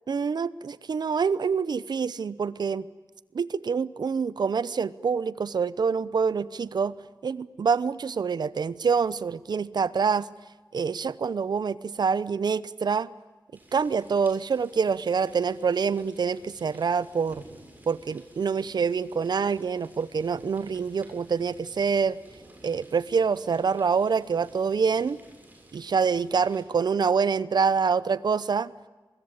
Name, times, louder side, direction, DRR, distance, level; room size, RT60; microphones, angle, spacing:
voice 1, 0.1-2.8 3.3-6.9 7.2-10.3 10.7-13.1 13.7-17.4 17.9-22.2 22.6-25.2 25.7-28.7, right 5 dB, 65° right, 18 dB, 0.8 m, -26 dB
sound 1, 13.5-26.6, right 1 dB, 25° right, 7.3 m, -53 dB
24.0 x 21.5 x 8.9 m, 1.2 s
wide cardioid pair, 130°, 8 cm